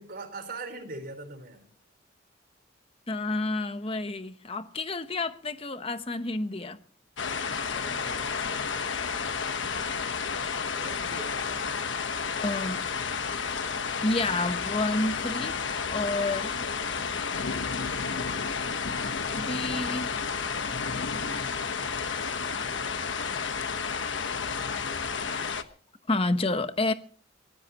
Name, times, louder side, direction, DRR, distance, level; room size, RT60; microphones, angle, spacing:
voice 1, 0.0-1.7 7.2-9.0 10.8-11.6 23.8-24.4, right 2 dB, 50° right, 4.2 m, -43 dB
voice 2, 3.1-6.8 12.4-12.8 14.0-15.5 15.9-16.6 19.2-20.1 23.3-23.4 26.1-26.9, left 2 dB, 30° left, 0.9 m, -29 dB
sound 1, 7.2-25.6, left 5 dB, 75° left, 1.2 m, -31 dB
24.0 x 18.0 x 3.0 m
head